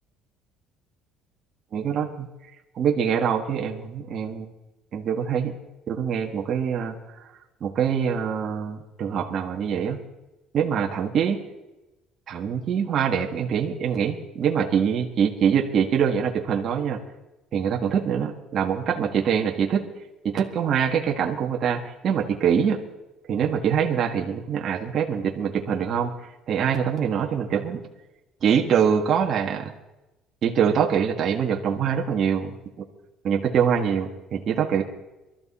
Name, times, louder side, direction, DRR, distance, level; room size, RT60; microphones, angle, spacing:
voice 1, 1.7-2.3 2.7-4.5 4.9-5.5 5.9-6.9 7.6-10.0 10.5-11.4 12.3-17.0 17.5-19.8 20.2-22.8 23.3-26.1 26.5-27.8 28.4-29.7 30.4-32.6 33.2-34.8, right 7 dB, 40° right, 1 dB, 1.5 m, -24 dB
22.5 x 13.0 x 4.2 m, 1.0 s
cardioid pair, 145°, 0 cm